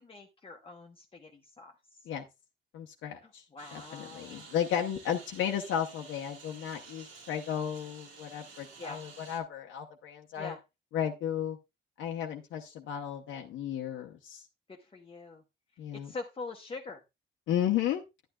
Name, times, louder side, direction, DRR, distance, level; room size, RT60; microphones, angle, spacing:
voice 1, 0.0-1.7 3.2-4.4 8.8-9.0 10.4-10.6 14.7-15.4 15.9-17.0, left 3 dB, 25° left, 1 dB, 0.9 m, -44 dB
voice 2, 2.7-3.4 3.7-10.5 10.9-11.6 12.0-14.4 15.8-16.1 17.5-18.0, left 9 dB, 85° left, 1 dB, 0.8 m, -34 dB
Engine, 3.6-9.4, right 4 dB, 75° right, 2.1 m, -51 dB
10.5 x 9.0 x 2.3 m, 0.23 s
cardioid pair, 90°, 20 cm